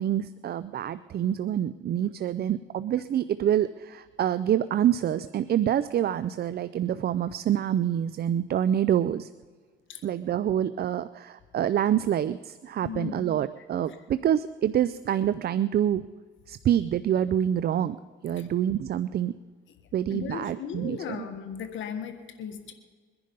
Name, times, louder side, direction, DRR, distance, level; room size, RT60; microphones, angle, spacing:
voice 1, 0.0-9.3 10.0-16.0 16.5-18.0 18.2-19.3 19.9-21.2, right 10 dB, 50° right, 14 dB, 0.5 m, -26 dB
voice 2, 12.8-13.2 13.6-13.7 18.3-18.5 20.1-22.7, left 8 dB, 75° left, 7 dB, 1.5 m, -37 dB
22.0 x 10.5 x 5.3 m, 1.5 s
cardioid pair, 90°, 20 cm